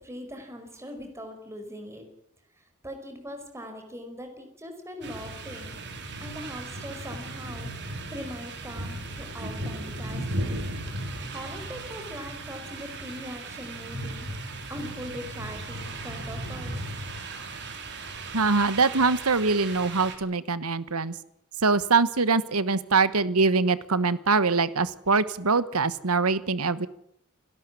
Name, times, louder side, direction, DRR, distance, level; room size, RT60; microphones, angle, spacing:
voice 1, 0.0-2.1 2.8-5.8 6.2-7.7 8.1-10.6 11.3-14.3 14.7-16.9, equal, 15° right, 5 dB, 5.0 m, -41 dB
sound 1, 5.0-20.2, right 2 dB, 55° right, 3.7 m, -36 dB
voice 2, 18.3-21.1 21.6-26.9, right 4 dB, 80° right, 16 dB, 1.3 m, -23 dB
29.0 x 12.5 x 9.8 m, 0.72 s
head